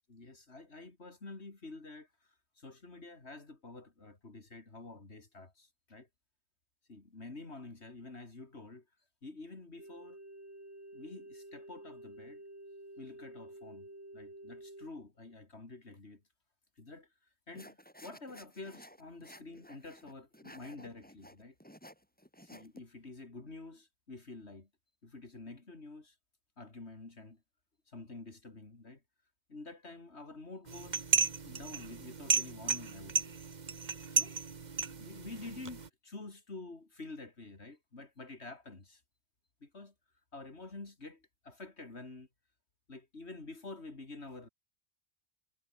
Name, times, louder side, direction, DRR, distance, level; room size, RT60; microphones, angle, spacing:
voice 1, 0.1-2.1 2.6-6.1 6.9-8.9 9.2-10.2 10.9-12.4 13.0-16.2 16.8-17.1 17.5-21.6 22.4-24.7 25.0-26.1 26.6-27.4 27.9-29.0 29.5-31.1 31.4-33.4 34.1-34.4 34.7-39.0 39.6-39.9 40.3-42.3 42.9-44.5, left 3 dB, 70° left, 3.5 m, -48 dB
sound 1, 9.8-14.9, right 1 dB, 85° right, 8.1 m, -50 dB
sound 2, 17.5-22.8, equal, 10° left, 5.6 m, -54 dB
sound 3, 30.7-35.9, right 5 dB, 40° right, 1.2 m, -34 dB
omnidirectional pair, 1.1 m